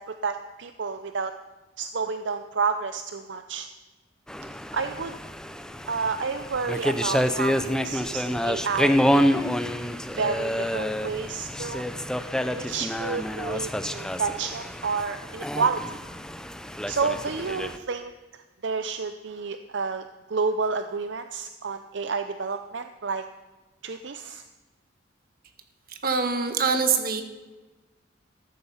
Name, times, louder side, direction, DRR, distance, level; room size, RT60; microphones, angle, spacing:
voice 1, 0.0-1.3 1.8-3.7 4.7-5.2 5.9-9.4 10.1-11.9 12.6-15.8 16.9-18.1 18.6-23.3 23.8-24.4, right 5 dB, 70° right, 9 dB, 0.6 m, -30 dB
sound 1, 4.3-17.8, equal, 5° left, 0.6 m, -28 dB
voice 2, 25.9-27.2, right 5 dB, 50° right, 7 dB, 1.6 m, -24 dB
14.0 x 13.5 x 5.7 m, 1.2 s
head